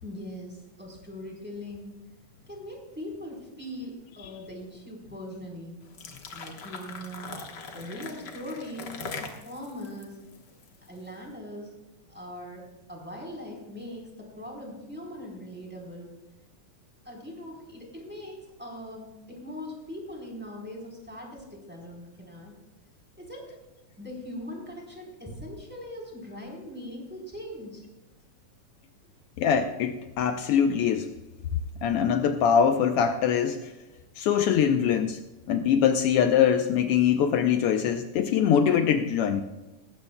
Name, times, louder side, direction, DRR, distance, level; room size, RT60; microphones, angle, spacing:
voice 1, 0.0-2.0 2.5-5.8 6.3-7.4 7.7-10.3 10.9-11.7 12.1-12.6 12.9-16.1 17.0-22.5 23.2-23.5 24.0-27.9, left 1 dB, 5° right, -2 dB, 3.5 m, -41 dB
sound 1, 5.8-11.1, left 4 dB, 50° left, 1.3 m, -41 dB
voice 2, 29.4-31.1 31.8-33.7 34.2-35.2 35.5-39.4, left 8 dB, 90° left, 6 dB, 1.2 m, -23 dB
19.0 x 16.0 x 2.2 m, 1.1 s
omnidirectional pair, 3.4 m